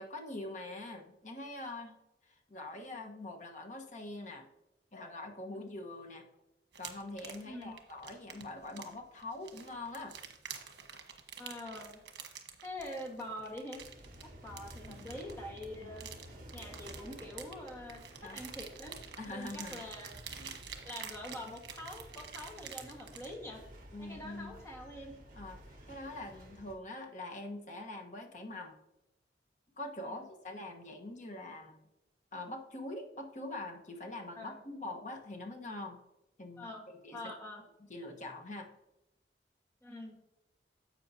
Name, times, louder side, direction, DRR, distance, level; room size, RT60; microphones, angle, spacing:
voice 1, 0.0-2.0 2.2-4.5 4.9-6.3 6.8-10.2 14.9-15.1 15.8-15.9 18.2-18.4 19.2-19.8 20.3-20.6 21.4-21.5 23.9-24.6 25.3-28.8 29.8-31.8 32.3-36.0 36.4-36.7 37.0-37.2 37.9-38.7, left 2 dB, 45° left, 2 dB, 1.1 m, -44 dB
sound 1, 6.7-23.4, right 7 dB, 75° right, 1.2 m, -48 dB
voice 2, 11.4-12.0 12.6-13.8 14.4-16.1 16.5-19.0 19.3-20.1 20.8-23.6 24.0-25.1 30.1-30.2 34.3-34.6 36.6-37.6 39.8-40.2, left 1 dB, 15° left, 0 dB, 1.4 m, -45 dB
sound 2, 13.8-26.7, equal, 50° right, 1.5 m, -53 dB
10.5 x 7.6 x 2.7 m, 0.95 s
head